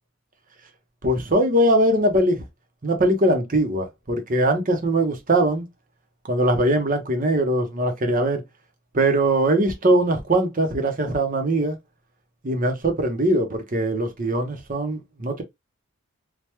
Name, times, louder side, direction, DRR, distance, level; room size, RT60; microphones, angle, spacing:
voice 1, 1.0-2.4 2.8-5.7 6.3-8.4 8.9-11.8 12.4-15.4, right 1 dB, 40° right, 0.8 m, -21 dB
3.3 x 2.2 x 2.9 m
head